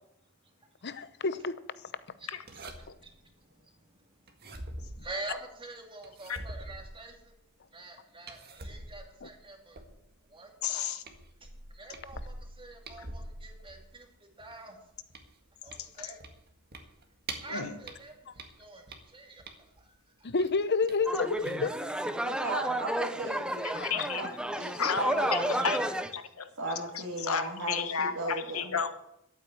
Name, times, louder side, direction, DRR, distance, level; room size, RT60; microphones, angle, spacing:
voice 1, 0.8-1.6 9.2-9.3 20.2-21.8 23.7-24.0, left 4 dB, 50° left, 14 dB, 0.8 m, -29 dB
voice 2, 2.5-3.2 4.4-4.6 5.0-7.3 7.7-9.8 10.3-10.9 11.7-14.8 15.6-16.2 17.4-18.1 18.6-19.4, right 2 dB, 25° right, 3 dB, 2.5 m, -45 dB
sound 1, 2.5-3.1 4.3-5.5 6.0-7.4 8.3-10.2 10.7-10.8 11.0-14.0 14.4-17.5 17.8-19.8 20.4-21.0 21.4-21.6, right 2 dB, 45° right, 1.8 m, -45 dB
voice 3, 10.6-11.0 13.0-13.1 15.8-16.1 17.5-17.7 21.4-21.6 23.6-24.2 24.6-25.0 25.3-26.5 26.9-29.0, left 6 dB, 70° left, 9 dB, 1.3 m, -33 dB
sound 2, 21.1-26.1, right 1 dB, 5° right, 0.7 m, -32 dB
voice 4, 22.2-23.7 24.0-25.8 26.6-28.7, right 2 dB, 70° right, -3 dB, 2.3 m, -36 dB
12.0 x 8.9 x 8.5 m, 0.79 s
head